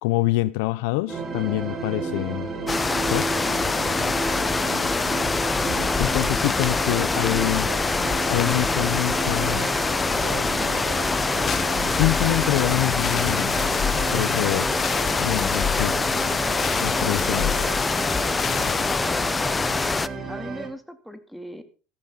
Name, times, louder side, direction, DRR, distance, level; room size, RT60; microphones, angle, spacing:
voice 1, 0.0-2.5 3.1-3.3 6.0-7.7 8.3-9.7 12.0-13.5 14.1-14.7 15.2-16.0 16.8-17.5, left 19 dB, 70° left, 0.6 m, -25 dB
sound 1, 1.1-20.7, right 4 dB, 30° right, 4.9 m, -32 dB
sound 2, 2.7-20.1, left 4 dB, 20° left, 0.8 m, -24 dB
sound 3, 3.1-19.0, left 8 dB, 40° left, 1.3 m, -34 dB
voice 2, 5.6-6.4 18.8-19.3 20.3-21.6, equal, ahead, 2.7 m, -39 dB
15.0 x 14.5 x 4.0 m
hypercardioid pair, 80°, 0 cm